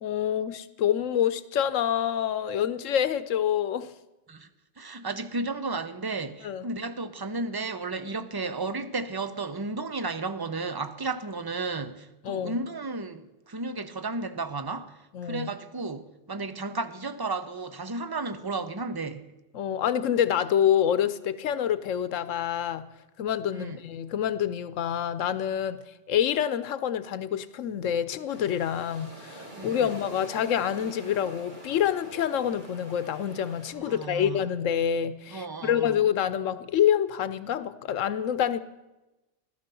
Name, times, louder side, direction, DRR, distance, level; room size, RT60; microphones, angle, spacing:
voice 1, 0.0-3.9 6.4-6.7 12.2-12.6 15.1-15.5 19.5-22.9 23.2-25.8 26.1-38.6, left 9 dB, 90° left, 1.1 m, -27 dB
voice 2, 4.8-19.3 23.5-23.8 29.6-30.0 33.8-34.5 35.3-36.0, right 3 dB, 25° right, 0.7 m, -33 dB
sound 1, 28.3-33.7, right 1 dB, 40° right, 3.2 m, -45 dB
16.5 x 12.0 x 6.9 m
omnidirectional pair, 1.3 m